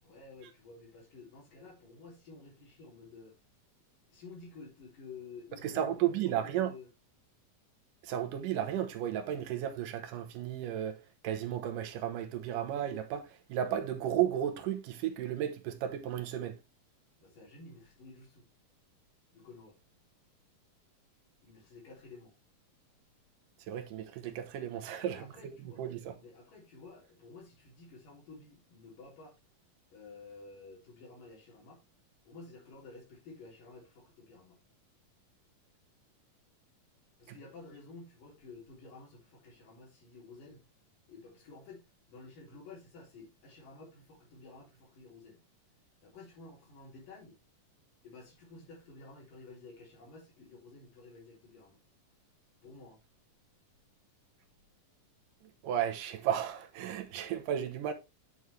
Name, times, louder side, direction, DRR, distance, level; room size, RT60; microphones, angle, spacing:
voice 1, 0.0-3.4 4.1-6.9 17.2-18.4 19.3-19.8 21.4-22.3 25.0-25.8 26.2-29.3 29.9-31.8 32.2-34.6 37.2-40.6 41.1-45.4 46.0-47.4 48.0-51.8 52.6-53.0, left 3 dB, 75° left, 5.1 m, -52 dB
voice 2, 5.6-6.7 8.0-11.0 11.2-16.6 23.7-25.5 25.8-26.1 37.3-37.4 55.6-57.9, right 10 dB, 80° right, 2.6 m, -34 dB
9.7 x 6.4 x 3.3 m
omnidirectional pair, 3.8 m